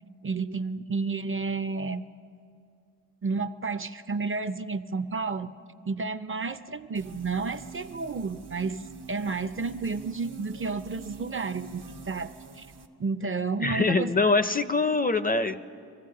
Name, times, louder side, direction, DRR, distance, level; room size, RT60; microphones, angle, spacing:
voice 1, 0.2-2.1 3.2-5.5 5.9-12.7 13.0-14.1, right 4 dB, 35° right, 12 dB, 0.5 m, -31 dB
sound 1, 6.9-12.9, right 4 dB, 85° right, 1.1 m, -46 dB
voice 2, 13.6-15.7, left 3 dB, 25° left, 12 dB, 0.4 m, -24 dB
25.0 x 15.0 x 3.8 m, 2.5 s
cardioid pair, 75°, 39 cm